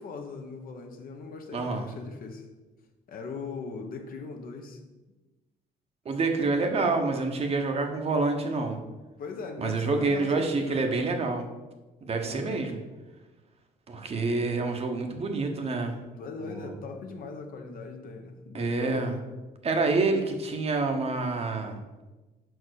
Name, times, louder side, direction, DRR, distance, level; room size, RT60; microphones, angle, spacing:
voice 1, 0.0-2.5 3.1-4.8 9.2-11.0 12.1-12.6 16.2-19.2, left 4 dB, 55° left, 4 dB, 1.0 m, -40 dB
voice 2, 1.5-1.8 6.0-8.8 9.6-11.5 12.0-12.8 13.9-16.0 16.4-16.7 18.5-19.1 19.6-21.8, right 3 dB, 35° right, 4 dB, 1.0 m, -27 dB
5.4 x 4.6 x 6.4 m, 1.2 s
cardioid pair, 110°, 17 cm